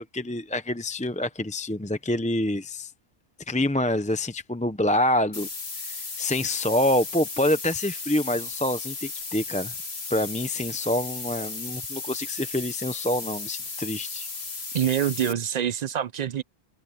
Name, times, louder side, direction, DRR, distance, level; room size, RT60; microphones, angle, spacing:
voice 1, 0.0-2.9 3.5-5.5 5.8-9.7 10.1-14.3, left 1 dB, 10° left, 0.6 m, -26 dB
sound 1, 5.3-15.3, left 4 dB, 80° left, 2.3 m, -35 dB
voice 2, 14.7-16.4, right 9 dB, 50° right, 0.6 m, -25 dB
omnidirectional pair, 1.0 m